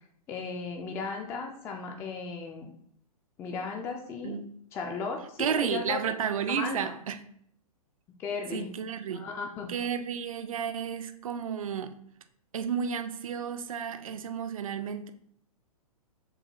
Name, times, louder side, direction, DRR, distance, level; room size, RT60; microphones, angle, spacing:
voice 1, 0.3-2.7 3.4-4.4 4.7-6.0 6.5-6.9 8.2-8.7 9.1-9.7, left 4 dB, 15° left, 0.3 m, -35 dB
voice 2, 5.4-7.2 8.5-9.2 9.7-12.0 12.5-15.1, right 8 dB, 65° right, 0.5 m, -32 dB
6.8 x 2.6 x 2.8 m
figure-of-eight pair, 115°, 19 cm